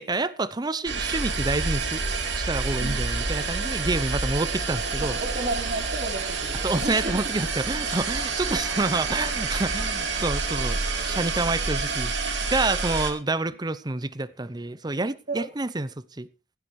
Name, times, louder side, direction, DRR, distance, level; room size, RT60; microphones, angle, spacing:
voice 1, 0.0-2.0 2.4-5.2 6.6-12.1 12.5-16.3, right 2 dB, 25° right, 0.7 m, -28 dB
sound 1, 0.8-13.1, right 4 dB, 90° right, 2.5 m, -28 dB
Male singing, 1.5-11.3, left 1 dB, ahead, 3.7 m, -48 dB
voice 2, 5.0-7.2 15.3-15.4, right 2 dB, 55° right, 3.6 m, -32 dB
16.5 x 14.5 x 3.2 m
head